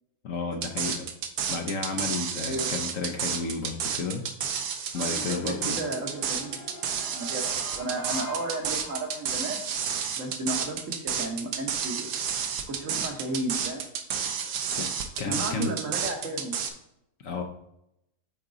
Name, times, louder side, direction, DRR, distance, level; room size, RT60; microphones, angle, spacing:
voice 1, 0.2-1.1 1.5-4.2 4.9-5.8 14.8-14.9 15.2-15.7 17.2-17.4, left 4 dB, 60° left, 3 dB, 1.0 m, -32 dB
sound 1, 0.6-16.7, right 7 dB, 80° right, 1.3 m, -30 dB
voice 2, 2.4-2.7 5.2-6.6 7.1-9.6 10.2-12.1 12.7-13.8 15.2-16.6, right 2 dB, 55° right, 2 dB, 1.3 m, -33 dB
sound 2, 4.9-9.6, left 2 dB, 90° left, 1.9 m, -43 dB
8.8 x 3.6 x 3.8 m, 0.80 s
omnidirectional pair, 1.7 m